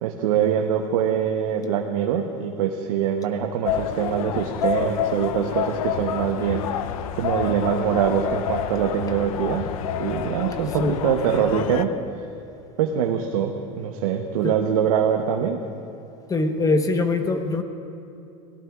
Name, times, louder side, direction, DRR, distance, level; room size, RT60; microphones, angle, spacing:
voice 1, 0.0-6.6 7.2-9.7 10.0-11.9 12.8-15.6, right 8 dB, 80° right, 3 dB, 1.0 m, -24 dB
sound 1, 3.6-11.8, left 9 dB, 80° left, 0.6 m, -28 dB
voice 2, 16.3-17.6, left 3 dB, 20° left, 6 dB, 1.1 m, -22 dB
23.5 x 17.5 x 2.4 m, 2.7 s
supercardioid pair, 110°, 18 cm